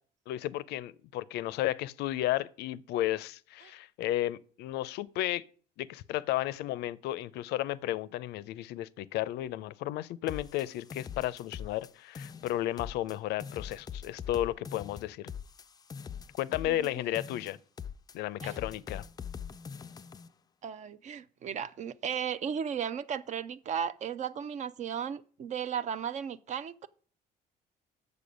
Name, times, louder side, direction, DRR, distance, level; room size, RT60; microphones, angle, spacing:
voice 1, 0.3-5.4 5.8-15.3 16.4-17.6 18.1-19.1, left 14 dB, 80° left, 0.4 m, -33 dB
sound 1, 10.3-11.9 12.1-13.1 13.4-16.9 17.1-18.1 18.4-20.3, left 7 dB, 25° left, 0.3 m, -43 dB
voice 2, 20.6-26.9, right 8 dB, 45° right, 0.4 m, -35 dB
6.9 x 6.7 x 5.1 m
cardioid pair, 110°, 17 cm